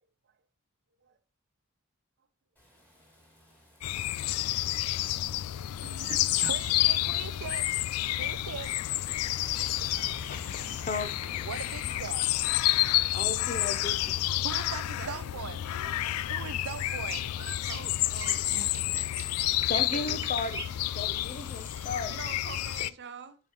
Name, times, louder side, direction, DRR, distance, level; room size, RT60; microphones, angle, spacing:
Rain, 2.6-19.6, equal, 10° left, 2.5 m, -54 dB
sound 1, 3.8-22.9, left 15 dB, 80° left, 0.3 m, -30 dB
voice 1, 5.8-9.1 9.5-10.7 11.4-12.3 12.6-12.7 14.4-16.0 16.3-17.3 18.5-18.9 19.7-20.2, right 7 dB, 80° right, 0.5 m, -42 dB
voice 2, 10.0-10.4 10.8-11.1 11.9-12.0 13.1-14.1 16.0-16.3 19.7-20.6 20.9-22.1, left 3 dB, 35° left, 0.8 m, -35 dB
voice 3, 14.3-16.2 17.4-19.4 22.0-23.4, right 5 dB, 55° right, 0.8 m, -47 dB
sound 2, 16.9-22.9, right 2 dB, 15° right, 1.8 m, -42 dB
10.5 x 4.7 x 3.1 m
head